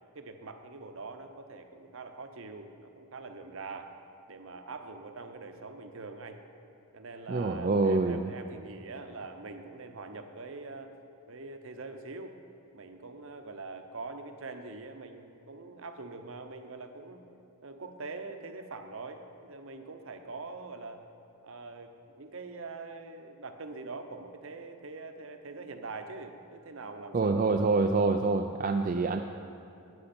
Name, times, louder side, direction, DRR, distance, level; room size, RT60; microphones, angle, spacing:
voice 1, 0.1-3.9 4.3-6.4 6.9-10.9 11.3-12.3 12.7-17.2 17.6-21.0 21.4-27.5, right 3 dB, 65° right, 6 dB, 0.8 m, -43 dB
voice 2, 7.3-8.3 27.1-29.2, right 3 dB, 35° right, 4 dB, 0.3 m, -26 dB
13.0 x 9.5 x 4.3 m, 2.9 s
head